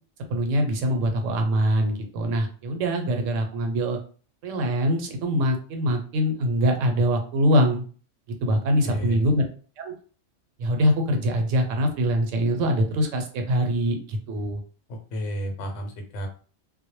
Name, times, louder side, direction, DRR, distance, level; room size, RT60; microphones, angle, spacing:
voice 1, 0.3-4.0 4.4-7.8 8.4-9.4 9.8-9.9 10.6-14.6, equal, 90° right, 4 dB, 1.0 m, -23 dB
voice 2, 8.8-9.2 14.9-16.3, right 1 dB, 80° left, 4 dB, 1.0 m, -31 dB
2.2 x 2.0 x 2.9 m, 0.40 s
omnidirectional pair, 1.3 m